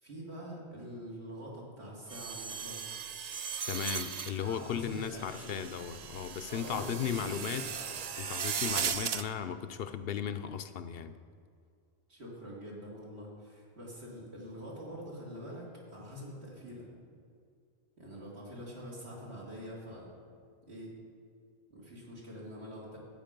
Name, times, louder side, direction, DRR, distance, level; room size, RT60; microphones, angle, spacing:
voice 1, 0.0-2.8 4.4-5.5 6.5-8.0 12.1-16.9 18.0-20.1 20.7-20.9 21.7-23.0, equal, 75° right, -4 dB, 3.1 m, -45 dB
sound 1, 2.1-9.2, right 7 dB, 50° right, 0.5 m, -38 dB
voice 2, 3.7-7.7 8.2-11.1, left 8 dB, 65° left, 11 dB, 0.8 m, -36 dB
13.5 x 8.7 x 5.2 m, 2.3 s
omnidirectional pair, 1.1 m